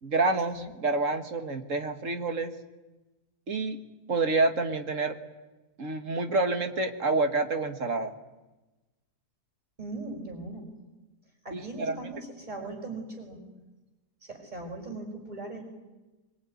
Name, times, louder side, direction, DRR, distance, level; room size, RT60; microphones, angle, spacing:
voice 1, 0.0-2.5 3.5-3.8 4.1-5.2 5.8-8.1 11.5-12.1, right 3 dB, 50° right, 7 dB, 2.1 m, -28 dB
voice 2, 9.8-10.7 11.4-13.4 14.2-15.6, right 2 dB, 25° right, 1 dB, 5.9 m, -39 dB
23.5 x 23.0 x 9.7 m, 1.1 s
omnidirectional pair, 1.7 m